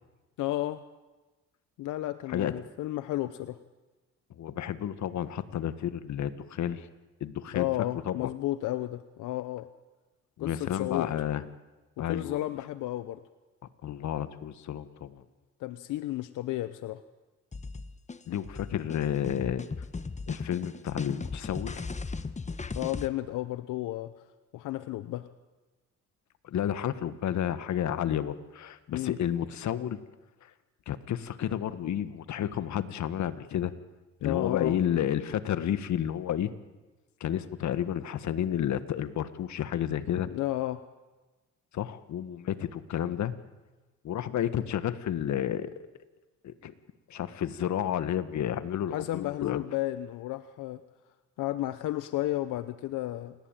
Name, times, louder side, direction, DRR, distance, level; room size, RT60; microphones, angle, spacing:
voice 1, 0.4-0.8 1.8-3.6 7.5-9.7 10.4-11.1 12.0-13.2 15.6-17.0 22.8-24.1 24.5-25.3 28.9-29.2 34.2-34.8 40.3-40.8 48.9-50.8 51.4-53.3, left 15 dB, 90° left, 12 dB, 0.9 m, -32 dB
voice 2, 4.4-6.9 7.2-7.7 8.1-8.3 10.4-11.4 12.0-12.4 13.8-15.2 18.3-19.6 20.3-21.9 26.4-30.0 30.9-33.7 34.2-36.5 37.2-40.3 41.7-43.3 44.0-45.7 46.4-46.7 47.1-49.6, left 10 dB, 70° left, 13 dB, 1.6 m, -31 dB
sound 1, 17.5-23.1, left 4 dB, 25° left, 1.3 m, -37 dB
28.5 x 19.5 x 9.1 m, 1.2 s
cardioid pair, 90°, 30 cm